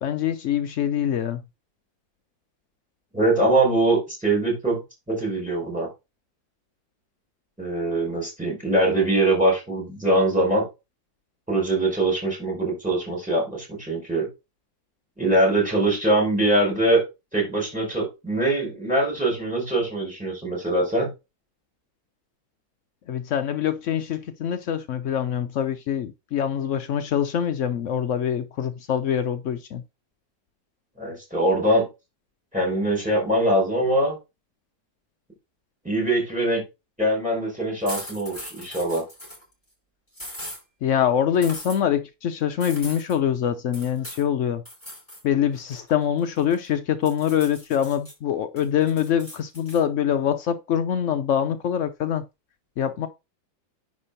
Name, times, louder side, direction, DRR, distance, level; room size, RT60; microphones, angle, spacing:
voice 1, 0.0-1.4 23.1-29.8 40.8-44.6 45.2-52.2 52.8-53.1, left 9 dB, 85° left, 0.6 m, -24 dB
voice 2, 3.1-4.8 5.1-5.9 7.6-10.7 11.5-14.3 15.2-17.0 17.3-21.1 31.0-31.9 32.5-34.2 35.8-36.6 37.0-39.0, right 1 dB, 5° right, 5.0 m, -22 dB
sound 1, 37.9-39.4 40.1-40.6 41.4-41.8 42.6-43.2 43.7-44.3 44.7-45.2 45.6-46.7 47.1-48.1 48.6-49.8, left 1 dB, 15° left, 4.8 m, -39 dB
9.9 x 3.6 x 5.1 m
omnidirectional pair, 2.1 m